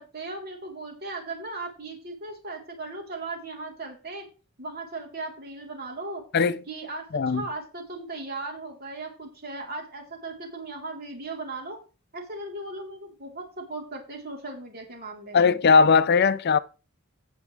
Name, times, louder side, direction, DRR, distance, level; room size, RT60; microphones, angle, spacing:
voice 1, 0.0-4.2 4.6-6.2 6.7-11.8 12.1-15.5, right 2 dB, 50° right, 3.8 m, -37 dB
voice 2, 15.3-16.6, left 5 dB, 50° left, 0.5 m, -19 dB
16.5 x 6.1 x 3.4 m
head